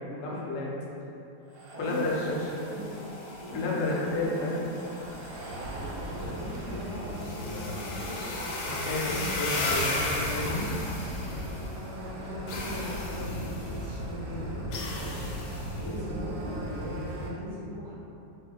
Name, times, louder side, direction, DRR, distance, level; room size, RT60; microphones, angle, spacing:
voice 1, 0.2-0.7 1.8-2.1 2.7-2.8 3.5-4.6 8.6-10.7, left 2 dB, 65° left, -5 dB, 0.8 m, -31 dB
sound 1, 1.5-17.3, equal, 80° right, 1.2 m, -38 dB
voice 2, 1.7-3.8 4.0-4.6 6.0-8.2 12.1-17.9, equal, 30° right, -11 dB, 0.7 m, -40 dB
sound 2, 1.8-11.9 12.5-13.9 14.7-15.9, left 2 dB, 85° left, 1.2 m, -37 dB
2.8 x 2.7 x 3.5 m, 2.9 s
omnidirectional pair, 1.9 m